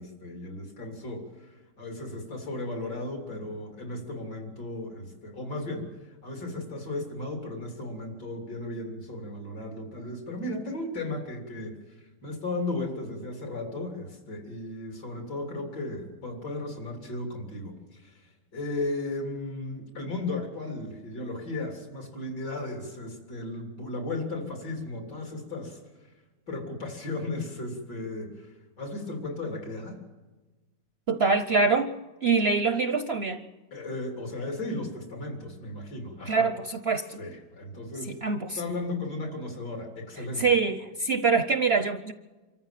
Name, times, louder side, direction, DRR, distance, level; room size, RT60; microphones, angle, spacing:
voice 1, 0.0-26.1 26.5-30.0 33.7-36.5 37.2-38.2 38.6-40.6, left 2 dB, 80° left, 2 dB, 4.0 m, -35 dB
voice 2, 31.1-31.9 32.2-33.4 36.3-37.2 38.1-38.6 40.4-42.1, right 4 dB, 55° right, 9 dB, 0.7 m, -24 dB
25.5 x 14.0 x 7.4 m, 1.2 s
omnidirectional pair, 1.8 m